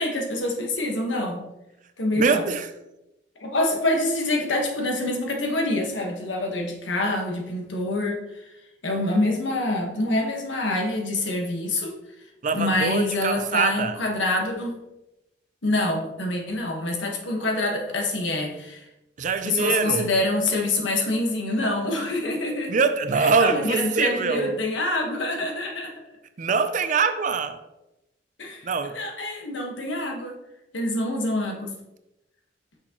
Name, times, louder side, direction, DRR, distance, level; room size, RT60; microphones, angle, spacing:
voice 1, 0.0-1.4 2.0-2.4 3.4-8.2 8.8-11.9 12.5-14.8 15.6-18.8 19.4-22.8 23.2-25.9 28.4-28.6 28.9-30.3 30.7-31.7, left 2 dB, 85° left, 1 dB, 1.3 m, -26 dB
voice 2, 2.1-2.7 12.4-14.0 19.2-20.1 22.7-24.6 26.4-27.6 28.6-29.0, right 5 dB, 40° right, 9 dB, 0.4 m, -23 dB
6.3 x 5.9 x 3.0 m, 0.94 s
head